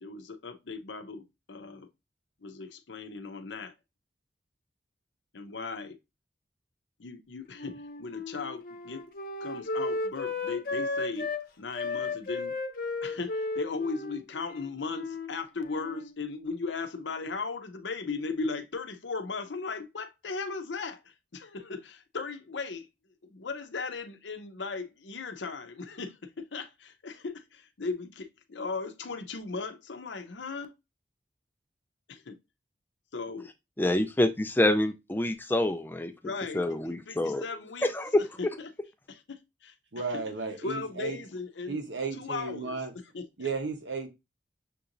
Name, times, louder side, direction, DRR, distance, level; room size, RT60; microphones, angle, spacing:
voice 1, 0.0-1.9 2.4-3.7 5.3-6.0 7.0-9.0 9.4-12.5 13.0-22.9 23.2-30.7 32.1-32.4 33.1-33.5 36.2-37.9 38.2-38.7 39.1-39.7 40.1-40.2 40.6-41.8 42.2-42.8 43.1-43.5, left 4 dB, 85° left, 0.7 m, -37 dB
Wind instrument woodwind instrument, 7.6-11.4 11.7-15.3 15.6-16.1, left 3 dB, 50° left, 0.8 m, -34 dB
voice 2, 33.8-36.1 36.5-37.4 37.9-38.3, left 1 dB, 10° left, 0.4 m, -26 dB
voice 3, 39.9-41.2 41.7-42.9 43.4-44.1, right 4 dB, 90° right, 1.0 m, -34 dB
6.6 x 2.9 x 2.6 m
head